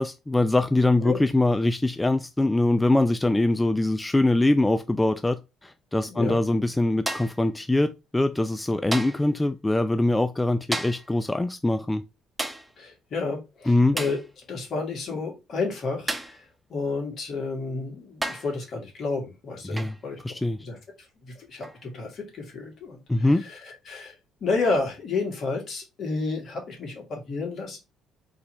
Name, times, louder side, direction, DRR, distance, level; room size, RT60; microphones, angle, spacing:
voice 1, 0.0-12.0 13.7-14.0 19.6-19.9 20.2-20.6 23.1-23.4, left 2 dB, 15° left, 0.4 m, -23 dB
voice 2, 6.1-6.4 12.8-14.2 14.5-20.2 20.6-24.1 24.4-27.8, left 3 dB, 55° left, 2.2 m, -31 dB
sound 1, 7.1-7.5 8.9-9.3 10.7-11.1 12.4-12.7 14.0-14.3 16.1-16.4 17.5-17.6 18.2-18.6 19.8-20.0 21.6-21.8, right 1 dB, 10° right, 0.8 m, -32 dB
4.0 x 2.9 x 4.2 m
supercardioid pair, 70°, 0 cm